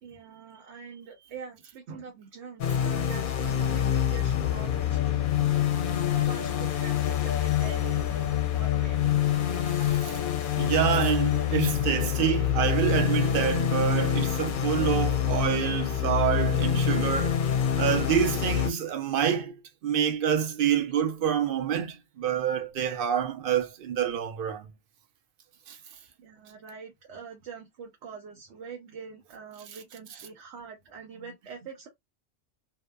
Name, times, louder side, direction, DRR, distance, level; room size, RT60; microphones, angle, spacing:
voice 1, 0.0-5.3 5.6-9.8 16.9-17.1 17.9-18.1 26.2-31.9, right 5 dB, 85° right, 1.0 m, -44 dB
sound 1, 2.6-18.7, left 10 dB, 60° left, 0.6 m, -26 dB
voice 2, 9.8-10.2 10.6-17.4 17.7-24.7 25.7-25.8, right 8 dB, 60° right, 0.8 m, -27 dB
2.8 x 2.1 x 2.2 m
omnidirectional pair, 1.1 m